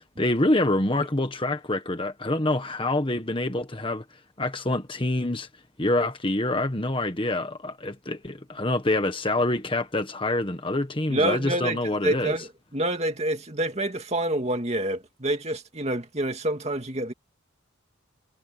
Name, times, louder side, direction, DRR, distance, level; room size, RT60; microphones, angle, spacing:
voice 1, 0.0-4.0 4.4-5.5 5.8-12.3, left 1 dB, 25° left, 1.5 m, -26 dB
voice 2, 11.1-17.1, right 1 dB, 30° right, 2.3 m, -27 dB
head